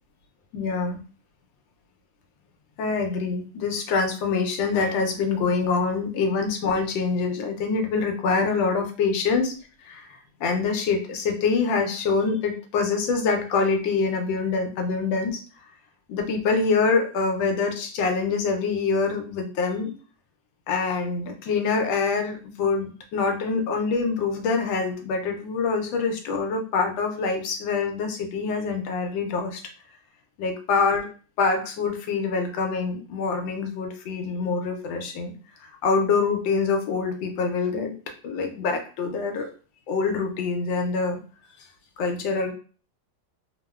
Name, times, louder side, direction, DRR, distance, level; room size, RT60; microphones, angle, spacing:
voice 1, 0.5-1.0 2.8-9.5 9.8-15.4 16.1-19.9 20.7-29.6 30.4-31.1 31.4-35.3 35.6-37.9 38.2-39.5 39.9-41.2 42.0-42.5, left 4 dB, 90° left, 4 dB, 1.4 m, -25 dB
3.4 x 2.1 x 2.3 m, 0.38 s
omnidirectional pair, 2.0 m